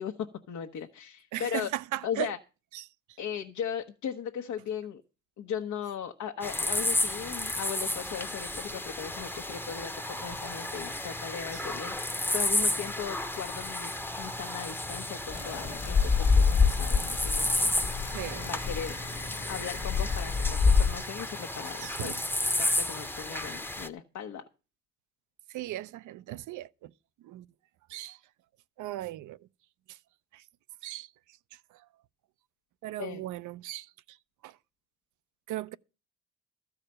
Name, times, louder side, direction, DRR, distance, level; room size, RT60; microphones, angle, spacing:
voice 1, 0.0-1.7 2.0-2.4 3.2-5.0 5.4-24.4 33.0-33.2, left 8 dB, 70° left, 1.0 m, -38 dB
voice 2, 1.3-2.3 2.7-2.8 11.5-11.6 18.1-18.5 21.8-22.2 25.5-26.9 27.2-27.4 27.9-28.2 28.8-29.4 29.9-30.0 30.3-30.4 30.8-31.1 32.8-33.9 34.4-34.5 35.5-35.8, right 14 dB, 75° right, 0.5 m, -37 dB
sound 1, 6.4-23.9, left 1 dB, 5° left, 0.8 m, -33 dB
sound 2, 15.3-20.9, left 5 dB, 40° left, 1.3 m, -26 dB
13.5 x 4.9 x 8.7 m
cardioid pair, 90°, 30 cm